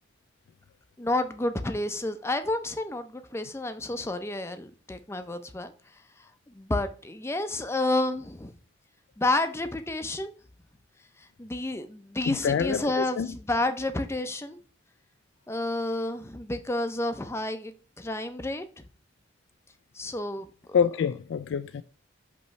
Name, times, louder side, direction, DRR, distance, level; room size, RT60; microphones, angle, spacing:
voice 1, 1.0-5.7 6.5-8.5 9.2-10.3 11.2-14.6 15.5-18.8 19.9-20.5, left 2 dB, 15° left, 0.5 m, -30 dB
voice 2, 12.3-13.3 20.7-21.8, left 7 dB, 75° left, 0.3 m, -26 dB
5.5 x 3.1 x 5.6 m
head